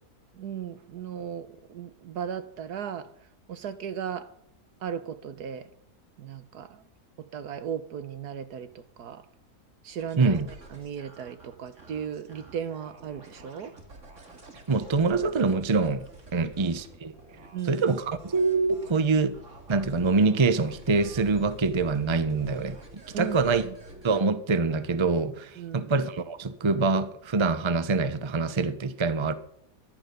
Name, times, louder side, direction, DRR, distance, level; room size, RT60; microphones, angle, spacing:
voice 1, 0.3-3.1 3.5-4.3 4.8-5.7 6.2-6.8 7.2-9.3 9.8-10.4 10.7-13.7 16.4-16.8 17.5-17.7 23.1-23.4 23.6-23.8 25.6-25.9, right 8 dB, 80° right, 1.6 m, -36 dB
sound 1, 10.0-24.2, right 2 dB, 50° right, 2.6 m, -48 dB
voice 2, 10.2-10.5 14.7-16.0 16.3-17.1 17.7-19.3 19.7-22.8 23.2-23.6 24.0-29.3, right 4 dB, 25° right, 0.7 m, -25 dB
14.0 x 11.5 x 6.8 m
omnidirectional pair, 1.7 m